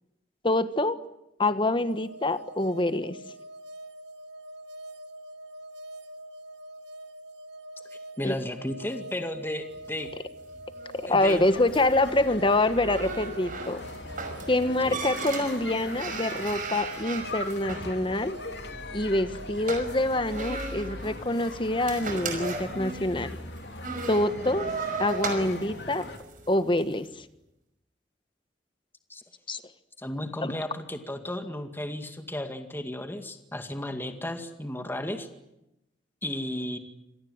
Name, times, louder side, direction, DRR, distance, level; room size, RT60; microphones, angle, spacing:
voice 1, 0.4-1.0 1.4-3.2 8.2-8.3 10.9-13.8 14.5-18.4 18.9-23.4 24.1-24.7 25.0-26.1 26.5-27.1 29.5-29.6 30.4-30.5, left 2 dB, 30° left, 12 dB, 1.4 m, -26 dB
sound 1, 1.9-20.2, right 1 dB, 80° right, 1.4 m, -44 dB
voice 2, 8.2-10.1 11.1-11.5 14.9-15.0 29.1-29.2 30.0-35.3 36.2-36.8, left 1 dB, 10° left, 6 dB, 2.1 m, -34 dB
sound 2, 9.7-27.0, right 4 dB, 50° right, 5.6 m, -38 dB
sound 3, 11.2-26.2, left 2 dB, 65° left, 3.4 m, -41 dB
27.0 x 18.5 x 9.7 m, 0.88 s
head